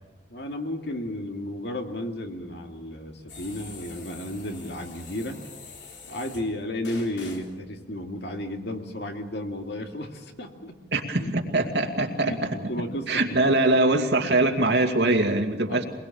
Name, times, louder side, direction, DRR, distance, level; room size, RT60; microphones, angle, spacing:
voice 1, 0.3-5.5 6.1-10.8 11.2-11.3 12.2-14.1 15.7-15.8, left 1 dB, 70° left, 4 dB, 2.3 m, -33 dB
sound 1, 3.3-6.5 6.8-7.5, left 4 dB, 85° left, 3.7 m, -44 dB
voice 2, 10.9-12.3 13.1-15.8, right 2 dB, 75° right, 3 dB, 2.5 m, -22 dB
23.5 x 21.5 x 7.3 m, 1.2 s
head